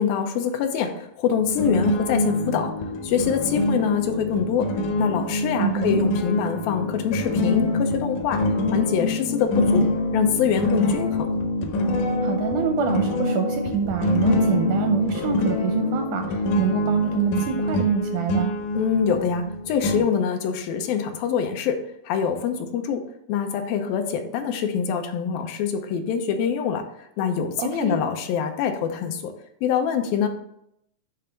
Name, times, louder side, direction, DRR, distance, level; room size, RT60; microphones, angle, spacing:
voice 1, 0.0-2.7 3.0-4.7 5.0-8.4 8.7-11.3 18.7-21.8 22.1-23.0 23.3-26.8 27.2-29.3 29.6-30.3, left 7 dB, 85° left, 5 dB, 2.6 m, -24 dB
sound 1, 1.6-20.0, left 1 dB, 70° left, 2.2 m, -25 dB
voice 2, 5.6-6.0 12.2-18.5 27.6-28.0, right 8 dB, 80° right, 5 dB, 1.8 m, -26 dB
8.6 x 3.3 x 5.3 m, 0.75 s
omnidirectional pair, 4.1 m